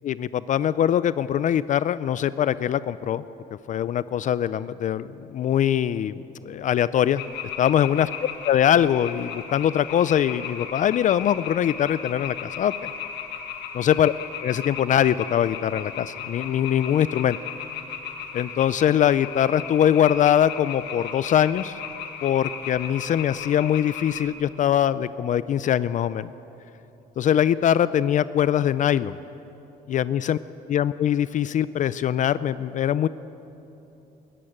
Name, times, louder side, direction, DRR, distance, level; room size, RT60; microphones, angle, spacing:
voice 1, 0.0-3.2 3.7-6.1 6.4-7.2 7.6-8.1 8.5-12.9 13.7-14.1 14.4-17.4 18.3-21.8 22.2-26.3 27.2-29.2 29.9-30.4 30.7-33.1, left 10 dB, 50° left, 16 dB, 0.5 m, -22 dB
sound 1, 7.2-24.3, left 8 dB, 85° left, 1.9 m, -36 dB
20.0 x 14.5 x 8.8 m, 3.0 s
cardioid pair, 110°, 17 cm